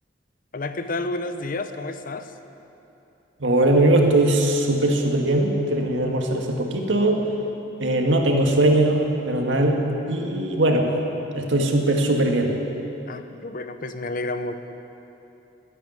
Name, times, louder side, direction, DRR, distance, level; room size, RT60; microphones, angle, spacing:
voice 1, 0.5-2.3 13.1-14.6, left 2 dB, 50° left, 9 dB, 0.7 m, -30 dB
voice 2, 3.4-7.2 7.8-9.8 10.1-10.9 11.3-12.5, right 1 dB, 85° right, 2 dB, 1.8 m, -20 dB
12.5 x 10.0 x 9.2 m, 2.9 s
head